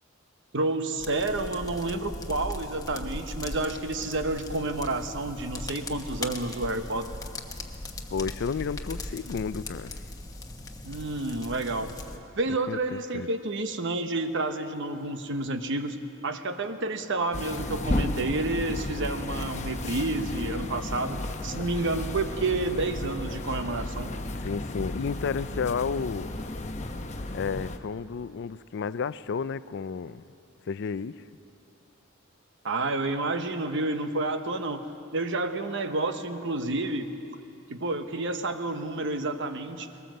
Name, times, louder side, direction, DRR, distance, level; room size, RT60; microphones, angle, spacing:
voice 1, 0.5-7.1 10.8-11.9 12.3-24.1 32.6-34.8 35.1-37.1 37.7-39.9, right 2 dB, 60° right, 1.1 m, -30 dB
sound 1, 1.0-12.2, left 2 dB, 15° left, 1.2 m, -39 dB
voice 2, 8.1-10.0 12.7-13.3 24.3-26.3 27.3-30.2 30.7-31.2, left 5 dB, 55° left, 0.4 m, -32 dB
sound 2, 17.3-27.8, left 1 dB, 35° left, 0.9 m, -33 dB
21.0 x 18.5 x 7.7 m
head